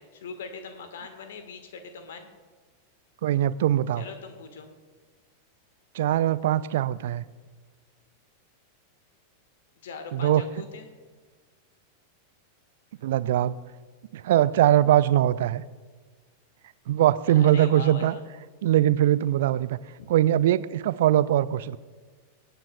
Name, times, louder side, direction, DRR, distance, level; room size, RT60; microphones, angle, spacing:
voice 1, 0.0-2.3 3.9-4.7 9.8-10.9 17.3-18.2 20.0-20.1, left 5 dB, 60° left, 8 dB, 1.3 m, -41 dB
voice 2, 3.2-4.0 5.9-7.2 10.1-10.4 13.0-13.6 14.1-15.6 16.9-18.1 18.6-19.8 20.1-21.8, right 12 dB, 55° right, 17 dB, 0.3 m, -21 dB
23.0 x 9.2 x 2.2 m, 1.4 s
figure-of-eight pair, 90°, 0 cm